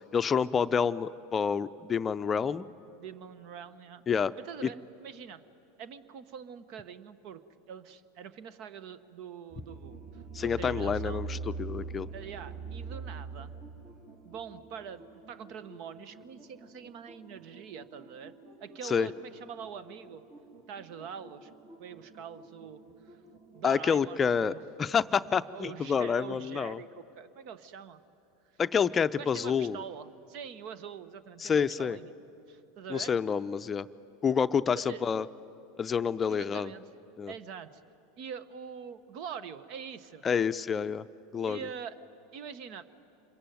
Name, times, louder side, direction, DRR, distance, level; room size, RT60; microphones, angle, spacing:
voice 1, 0.1-2.7 4.1-4.3 4.6-4.7 10.3-12.1 18.8-19.1 23.6-26.8 28.6-29.8 31.4-32.0 32.9-33.9 34.2-35.3 35.8-36.7 37.2-37.3 40.2-41.0 41.3-41.6, left 6 dB, 25° left, 12 dB, 0.5 m, -28 dB
voice 2, 3.0-4.0 4.4-5.4 5.8-11.3 12.1-13.5 14.2-18.3 18.6-20.2 20.7-21.5 21.8-23.1 23.5-24.6 25.5-28.0 29.1-32.1 32.5-33.1 34.7-35.0 36.3-36.8 37.3-37.8 38.2-40.2 41.5-42.0 42.3-42.8, right 7 dB, 55° right, 15 dB, 1.1 m, -44 dB
sound 1, 9.5-23.7, right 4 dB, 40° right, 2.8 m, -44 dB
26.5 x 22.0 x 9.4 m, 3.0 s
hypercardioid pair, 85°, 0 cm